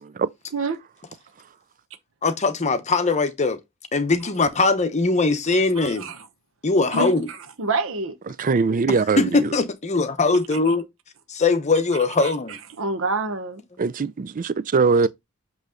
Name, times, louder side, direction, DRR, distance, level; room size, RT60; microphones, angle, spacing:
voice 1, 2.2-3.6 3.9-6.1 6.6-7.3 9.2-10.9 11.3-12.6, left 3 dB, 35° left, 0.8 m, -21 dB
voice 2, 5.8-6.3 6.9-8.2 10.5-10.7 12.2-13.6, right 3 dB, 70° right, 0.9 m, -28 dB
voice 3, 8.4-9.5 13.8-15.1, right 4 dB, 40° right, 0.4 m, -21 dB
8.0 x 3.1 x 3.7 m
head